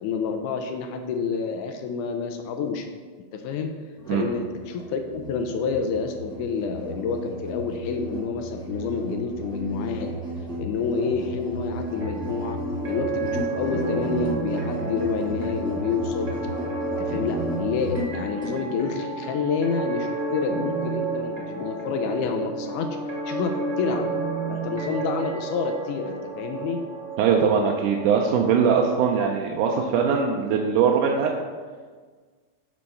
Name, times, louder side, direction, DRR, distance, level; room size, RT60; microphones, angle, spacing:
voice 1, 0.0-2.9 3.3-3.7 4.1-10.2 10.6-12.6 12.9-16.3 16.8-22.9 23.3-24.1 24.5-26.8, left 5 dB, 90° left, 5 dB, 2.2 m, -28 dB
Musical instrument, 4.0-18.6, equal, ahead, 1.0 m, -34 dB
sound 1, 11.8-28.3, right 3 dB, 30° right, 1.6 m, -31 dB
voice 2, 27.2-31.3, right 6 dB, 85° right, 0 dB, 2.2 m, -21 dB
8.4 x 4.5 x 5.5 m, 1.5 s
omnidirectional pair, 3.5 m